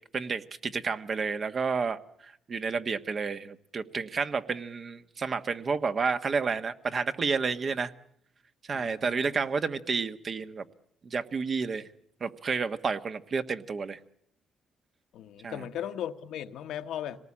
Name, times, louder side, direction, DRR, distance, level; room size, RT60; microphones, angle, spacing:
voice 1, 0.1-7.9 8.7-10.6 11.0-11.9 12.2-14.0 15.4-15.7, right 5 dB, 45° right, 1.3 m, -30 dB
voice 2, 8.7-9.3 15.1-17.2, left 10 dB, 80° left, 1.2 m, -37 dB
26.0 x 19.0 x 8.7 m
cardioid pair, 90°, 0 cm